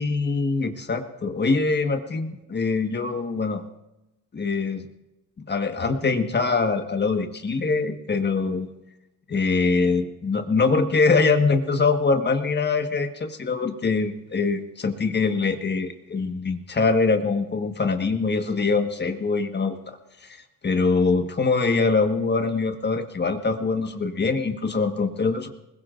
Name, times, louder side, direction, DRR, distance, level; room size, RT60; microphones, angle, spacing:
voice 1, 0.0-3.6 4.3-4.9 5.5-8.7 9.3-25.5, left 4 dB, 30° left, 6 dB, 1.5 m, -23 dB
21.0 x 20.5 x 2.6 m, 0.95 s
supercardioid pair, 80°, 34 cm